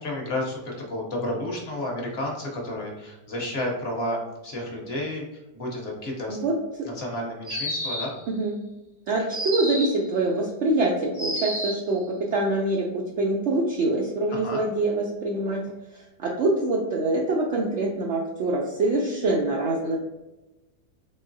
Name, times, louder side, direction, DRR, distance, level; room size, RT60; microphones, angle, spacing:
voice 1, 0.0-4.2 4.4-5.2 5.5-6.4 6.9-8.1 14.3-14.6, left 1 dB, 50° left, -1 dB, 0.9 m, -31 dB
voice 2, 6.3-6.9 8.3-8.5 9.1-15.6 15.9-20.0, right 2 dB, 85° right, -1 dB, 0.6 m, -25 dB
sound 1, 7.4-8.3 9.3-10.1 11.1-11.9, equal, 15° right, 0.6 m, -30 dB
3.7 x 3.5 x 2.6 m, 1.0 s
omnidirectional pair, 1.8 m